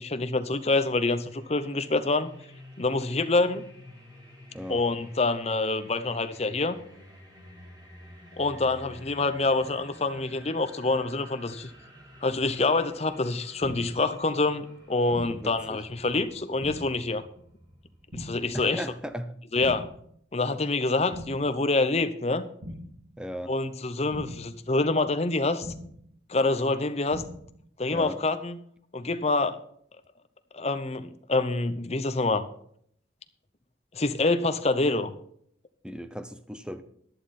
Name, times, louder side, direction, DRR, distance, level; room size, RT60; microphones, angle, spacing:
voice 1, 0.0-2.3 2.8-3.6 4.7-6.8 8.4-11.7 12.2-17.2 18.1-18.8 19.5-19.8 20.3-22.4 23.5-25.7 26.3-27.2 27.8-28.6 28.9-29.6 30.5-32.5 33.9-35.1, left 3 dB, 35° left, 10 dB, 0.7 m, -26 dB
sound 1, 1.2-19.1, equal, 20° right, 2.2 m, -50 dB
voice 2, 4.5-4.8 15.2-15.8 18.5-19.3 23.2-23.5 27.9-28.2 35.8-36.8, equal, 5° right, 10 dB, 0.7 m, -36 dB
sound 2, 13.6-14.1 15.1-15.6 16.6-17.1 18.1-18.6 19.6-20.1 21.1-21.6 22.6-23.1 24.1-24.6 25.6-26.1 27.1-27.6, equal, 70° right, 1.8 m, -41 dB
11.5 x 11.0 x 4.3 m, 0.66 s
head